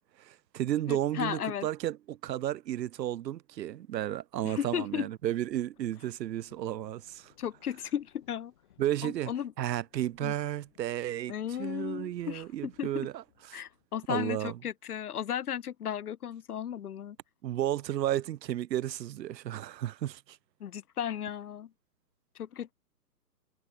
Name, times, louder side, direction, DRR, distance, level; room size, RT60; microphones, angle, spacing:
voice 1, 0.2-7.3 8.8-9.3 9.6-13.2 13.5-13.6 14.1-14.6 17.4-20.4, right 12 dB, 85° right, 0.6 m, -33 dB
voice 2, 0.9-1.7 4.4-5.1 7.4-8.5 9.0-9.5 10.2-10.3 11.3-13.1 13.5-17.2 20.6-21.7 22.4-22.7, left 9 dB, 65° left, 0.7 m, -35 dB
sound 1, 5.1-13.9, left 12 dB, 30° left, 4.5 m, -67 dB
hypercardioid pair, 170°, 49 cm